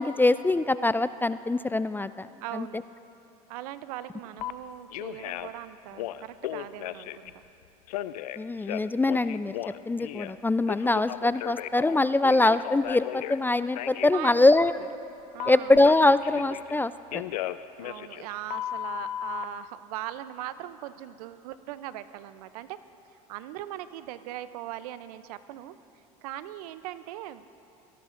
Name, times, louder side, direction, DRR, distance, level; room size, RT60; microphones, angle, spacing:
voice 1, 0.0-2.3 2.5-2.7 8.4-9.5 9.9-14.8 15.5-17.2, left 2 dB, 10° left, 14 dB, 0.3 m, -23 dB
voice 2, 2.4-2.8 3.5-7.4 14.1-14.5 15.3-15.8 17.8-22.8 23.3-25.8 26.2-27.5, right 13 dB, 75° right, 14 dB, 0.6 m, -39 dB
Telephone, 4.4-4.5 4.9-5.6 5.9-7.3 7.9-10.4 10.7-13.4 13.7-14.1 15.4-16.8 17.1-19.4, left 13 dB, 80° left, 0.5 m, -35 dB
23.5 x 18.0 x 2.6 m, 2.8 s
hypercardioid pair, 80°, 19 cm